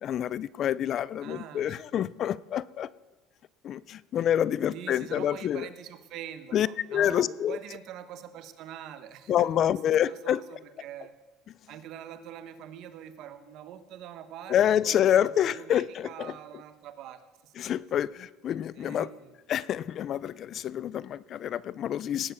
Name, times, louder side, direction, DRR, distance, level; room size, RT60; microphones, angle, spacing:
voice 1, 0.0-2.9 3.6-5.7 6.5-7.6 9.3-10.4 14.5-16.3 17.6-19.1 19.5-22.3, left 10 dB, 40° left, 21 dB, 0.3 m, -27 dB
voice 2, 1.2-2.1 4.2-4.3 4.7-11.1 11.7-17.9 18.7-19.3, right 10 dB, 55° right, 10 dB, 1.1 m, -44 dB
18.0 x 7.1 x 6.6 m, 1.3 s
cardioid pair, 145°, 0 cm